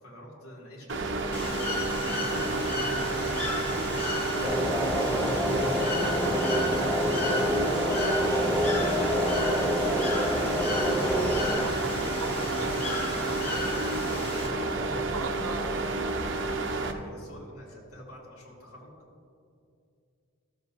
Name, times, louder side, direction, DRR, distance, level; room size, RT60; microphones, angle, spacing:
voice 1, 0.0-10.7 14.4-18.9, left 1 dB, 85° left, -5 dB, 2.4 m, -46 dB
sound 1, 0.9-16.9, right 3 dB, 55° right, 0.7 m, -30 dB
Bird / Water, 1.3-14.5, left 2 dB, 25° left, 2.1 m, -34 dB
sound 2, 4.4-11.6, equal, 5° left, 0.4 m, -27 dB
voice 2, 11.6-14.5 14.8-15.7, right 3 dB, 80° right, 6 dB, 0.9 m, -40 dB
14.0 x 7.4 x 2.7 m, 2.4 s
head